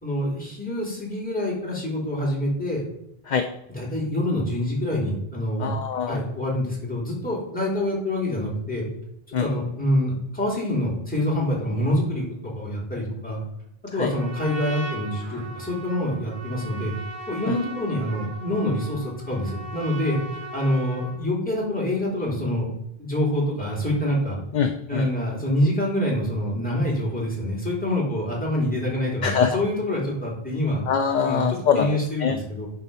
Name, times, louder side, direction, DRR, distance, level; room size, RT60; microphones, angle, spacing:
voice 1, 0.0-2.8 3.7-5.8 6.1-8.8 9.3-13.4 13.9-16.9 17.3-20.2 20.5-22.7 23.0-24.4 24.9-30.8 31.2-31.4 31.8-32.7, left 1 dB, 10° left, -4 dB, 3.5 m, -26 dB
voice 2, 5.6-6.2 9.3-9.5 14.0-14.1 17.5-17.6 24.5-25.1 29.2-29.6 30.9-32.4, left 7 dB, 50° left, 7 dB, 0.7 m, -23 dB
Trumpet, 13.9-21.2, right 2 dB, 50° right, 2.8 m, -38 dB
11.0 x 4.9 x 5.6 m, 0.81 s
omnidirectional pair, 1.0 m